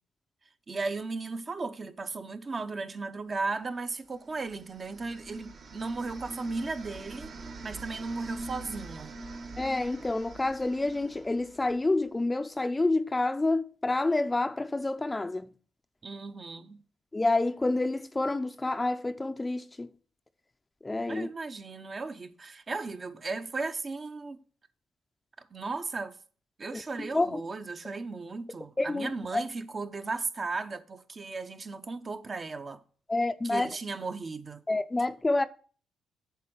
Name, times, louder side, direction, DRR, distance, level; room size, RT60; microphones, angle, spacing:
voice 1, 0.7-7.3 7.6-9.1 16.0-16.8 21.1-24.4 25.5-26.2 26.6-32.8 33.4-34.6, right 3 dB, 35° right, 0.9 m, -36 dB
sound 1, 4.1-12.1, right 2 dB, 50° right, 1.2 m, -44 dB
voice 2, 9.6-15.5 17.1-19.9 20.8-21.3 26.7-26.8 27.1-27.4 28.8-29.4 33.1-33.7 34.7-35.5, left 2 dB, 20° left, 0.6 m, -28 dB
8.4 x 6.8 x 6.1 m
cardioid pair, 90°, 0 cm